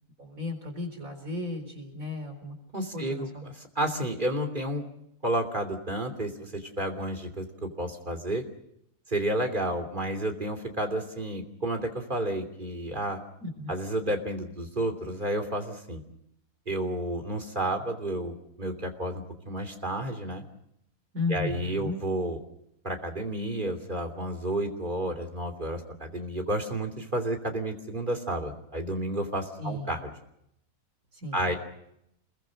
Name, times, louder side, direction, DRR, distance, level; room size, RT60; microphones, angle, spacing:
voice 1, 0.2-2.6 2.9-3.4 13.4-13.7 21.1-22.0 29.6-30.0 31.1-31.6, left 3 dB, 60° right, 6 dB, 4.6 m, -34 dB
voice 2, 2.7-4.8 5.2-8.4 9.1-13.2 13.7-16.0 16.7-20.4 21.3-22.4 22.8-30.0 31.3-31.6, right 1 dB, 30° right, 5 dB, 3.2 m, -31 dB
28.0 x 22.0 x 6.5 m, 0.78 s
omnidirectional pair, 1.6 m